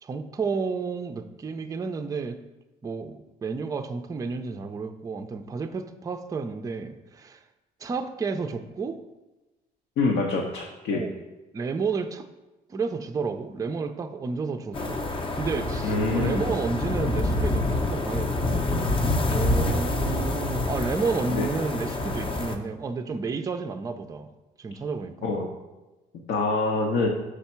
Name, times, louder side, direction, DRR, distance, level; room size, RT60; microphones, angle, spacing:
voice 1, 0.0-2.4 2.8-7.4 7.8-9.0 10.9-11.1 11.5-12.3 12.7-15.0 15.4-18.6 19.3-24.3 24.6-25.3, right 4 dB, 20° right, 7 dB, 0.4 m, -31 dB
voice 2, 10.0-11.0 15.8-16.5 21.3-21.5 25.2-25.5 26.3-27.1, left 3 dB, 75° left, 0 dB, 0.8 m, -25 dB
sound 1, 14.7-22.6, left 2 dB, 30° left, 0.6 m, -27 dB
6.4 x 3.4 x 4.3 m, 1.1 s
cardioid pair, 110°, 17 cm